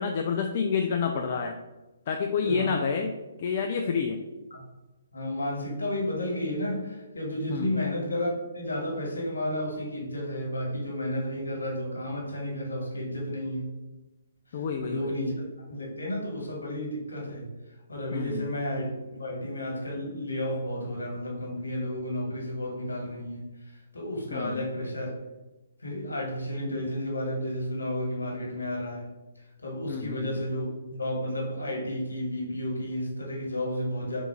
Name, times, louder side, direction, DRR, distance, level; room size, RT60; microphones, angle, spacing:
voice 1, 0.0-1.6 2.1-3.1 3.4-4.2 7.5-7.8 14.5-15.1 18.1-18.5 24.3-24.7 29.9-30.4, left 6 dB, 45° left, 5 dB, 0.3 m, -29 dB
voice 2, 2.4-2.9 4.5-4.6 5.1-13.8 14.5-15.3 15.7-17.5 17.9-25.1 25.8-29.1 29.6-34.2, left 1 dB, 80° left, -1 dB, 1.4 m, -32 dB
3.6 x 2.7 x 4.4 m, 1.1 s
figure-of-eight pair, 135°, 0 cm